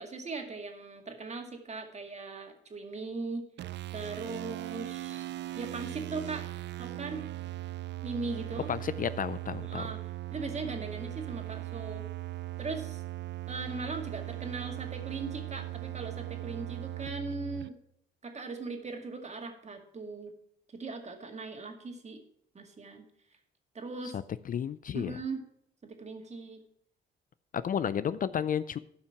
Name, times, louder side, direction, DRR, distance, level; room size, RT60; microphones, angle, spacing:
voice 1, 0.0-3.4 3.9-5.3 5.6-6.5 6.8-7.2 8.0-8.7 9.7-10.0 10.3-12.0 12.6-13.0 13.5-17.8 18.2-20.3 20.7-22.2 22.5-23.0 23.7-24.2 24.9-25.4 25.8-26.6, right 3 dB, 35° right, 4 dB, 2.1 m, -39 dB
sound 1, 3.6-17.7, right 15 dB, 65° right, 0.4 m, -39 dB
voice 2, 8.7-9.8 24.5-25.2 27.5-28.8, left 8 dB, 45° left, 15 dB, 0.4 m, -32 dB
11.5 x 5.8 x 5.9 m, 0.71 s
cardioid pair, 90°, 20 cm